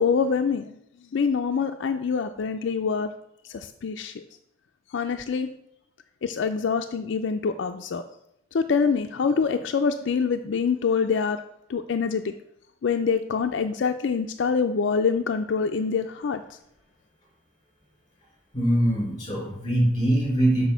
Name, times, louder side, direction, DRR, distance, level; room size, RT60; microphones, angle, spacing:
voice 1, 0.0-3.1 3.4-4.2 4.9-5.5 6.2-8.0 8.5-11.4 11.7-12.3 12.8-16.6, left 5 dB, 65° left, 6 dB, 0.4 m, -25 dB
voice 2, 18.5-20.6, right 1 dB, 25° left, -2 dB, 3.5 m, -22 dB
6.1 x 5.0 x 6.7 m, 0.79 s
head